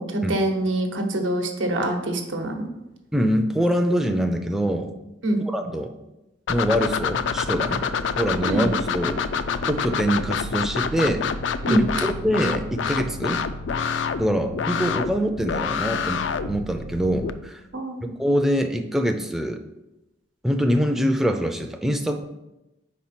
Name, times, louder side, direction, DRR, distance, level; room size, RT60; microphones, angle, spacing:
voice 1, 0.0-2.7 5.2-5.4 8.4-8.7 11.6-11.8 17.7-18.1, right 1 dB, 90° right, 3 dB, 1.0 m, -25 dB
voice 2, 3.1-4.9 5.4-5.9 6.5-7.8 8.2-9.2 9.7-11.2 11.7-13.4 14.2-17.6 18.2-19.6 20.4-22.2, equal, ahead, 4 dB, 0.4 m, -24 dB
sound 1, 6.5-17.3, left 6 dB, 70° left, 0.4 m, -27 dB
5.0 x 4.3 x 5.7 m, 0.96 s
head